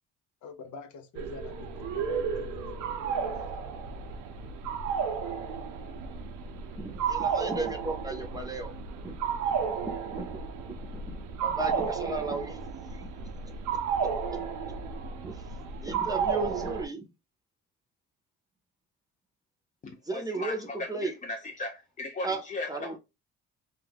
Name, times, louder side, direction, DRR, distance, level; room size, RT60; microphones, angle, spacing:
voice 1, 0.4-3.7, left 4 dB, 75° left, 0.6 m, -45 dB
sound 1, 1.1-16.9, right 6 dB, 90° right, 0.5 m, -33 dB
voice 2, 6.8-8.7 9.0-9.1 10.1-10.4 10.9-12.6 13.0-13.1 14.3-14.4 15.2-15.4 15.8-17.1 20.1-20.6 20.9-21.1 22.2-22.4 22.7-23.0, right 3 dB, 10° right, 0.6 m, -34 dB
voice 3, 19.8-23.0, left 2 dB, 25° left, 0.4 m, -37 dB
2.4 x 2.2 x 3.3 m
cardioid pair, 90°, 30 cm